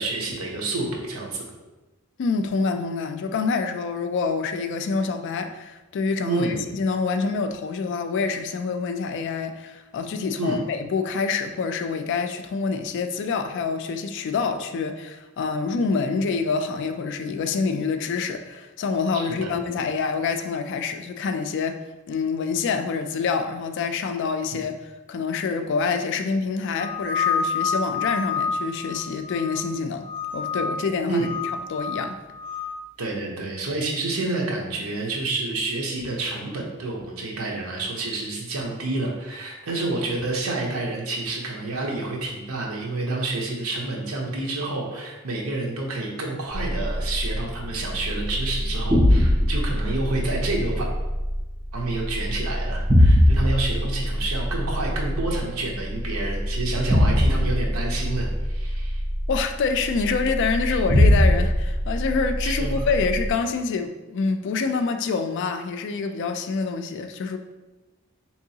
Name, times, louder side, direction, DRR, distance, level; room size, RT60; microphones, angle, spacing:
voice 1, 0.0-1.4 6.2-6.6 10.4-10.6 19.4-19.5 31.1-31.3 33.0-50.8 51.7-59.0 62.4-62.9, right 2 dB, 85° right, -1 dB, 0.8 m, -29 dB
voice 2, 2.2-21.8 22.1-30.1 30.3-31.3 31.7-32.2 59.3-67.4, left 4 dB, 55° left, 8 dB, 0.3 m, -26 dB
sound 1, 26.8-29.7 30.0-30.8 31.2-32.7, left 5 dB, 25° left, 0.7 m, -28 dB
sound 2, 46.5-63.3, left 1 dB, 15° right, 0.5 m, -23 dB
3.7 x 2.9 x 2.7 m, 1.1 s
head